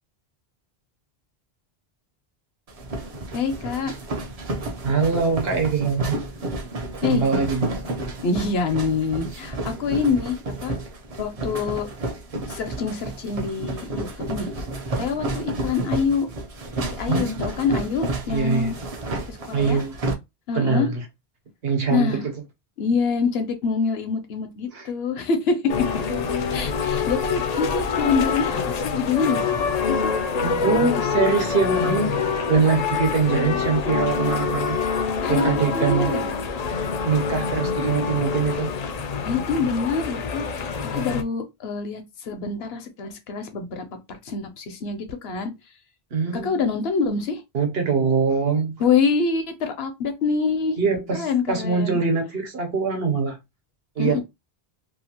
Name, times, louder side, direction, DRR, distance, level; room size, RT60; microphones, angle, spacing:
sound 1, 2.7-20.1, right 2 dB, 45° right, 0.6 m, -31 dB
voice 1, 3.3-3.9 7.0-7.2 8.2-10.8 11.2-11.9 12.5-14.5 15.0-16.3 16.9-18.7 19.3-19.8 20.5-20.9 21.9-22.2 22.8-25.7 26.5-30.1 35.2-36.3 39.2-45.5 46.3-47.4 48.8-50.8 51.1-52.0 54.0-54.2, left 5 dB, 80° left, 0.9 m, -25 dB
voice 2, 4.8-6.2 7.1-7.7 16.9-17.4 18.3-18.7 19.5-20.0 20.5-21.0 21.6-22.3 24.7-24.8 26.8-26.9 30.4-34.8 35.3-36.1 37.0-38.7 46.1-46.6 47.5-48.8 50.8-53.4 54.0-54.2, right 5 dB, 75° right, 1.1 m, -23 dB
sound 2, 25.7-41.2, left 5 dB, 55° left, 0.5 m, -25 dB
2.8 x 2.4 x 2.7 m
omnidirectional pair, 1.0 m